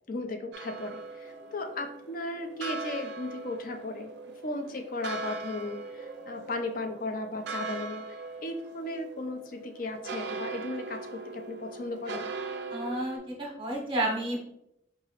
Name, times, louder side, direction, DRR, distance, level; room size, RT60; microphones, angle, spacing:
voice 1, 0.1-4.1 4.4-12.3, left 2 dB, 50° left, 6 dB, 0.5 m, -36 dB
sound 1, 0.5-13.2, right 3 dB, 65° right, 0.4 m, -40 dB
voice 2, 12.7-14.4, right 1 dB, 30° right, -1 dB, 0.9 m, -31 dB
4.6 x 2.9 x 2.9 m, 0.77 s
head